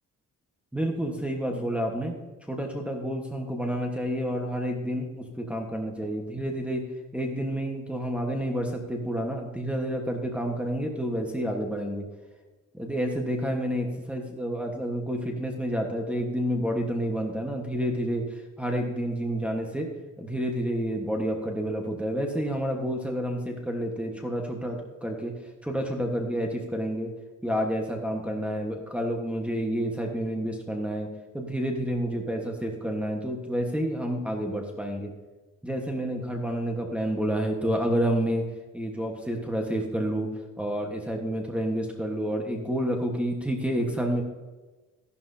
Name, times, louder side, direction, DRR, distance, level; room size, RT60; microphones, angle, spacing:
voice 1, 0.7-2.1 2.5-6.8 7.1-12.0 12.7-19.9 20.2-25.3 25.6-27.1 27.4-31.1 31.3-35.1 35.6-38.4 38.7-40.3 40.6-44.2, equal, 5° right, 0 dB, 1.2 m, -29 dB
13.5 x 11.5 x 2.7 m, 1.2 s
wide cardioid pair, 145°, 30 cm